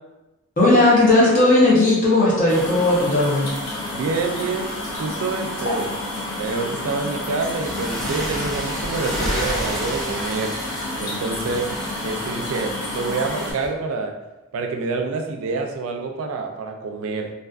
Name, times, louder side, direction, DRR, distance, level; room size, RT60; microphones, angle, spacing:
voice 1, 0.6-3.5, left 2 dB, 35° left, -7 dB, 0.8 m, -16 dB
sound 1, 2.5-13.5, left 1 dB, 70° left, 0.6 m, -30 dB
voice 2, 3.9-4.7 5.0-6.0 6.4-10.5 11.0-11.7 12.0-14.2 14.5-17.3, right 4 dB, 70° right, 4 dB, 0.3 m, -27 dB
sound 2, 7.4-13.7, equal, ahead, 0.6 m, -31 dB
2.5 x 2.4 x 2.3 m, 1.0 s
head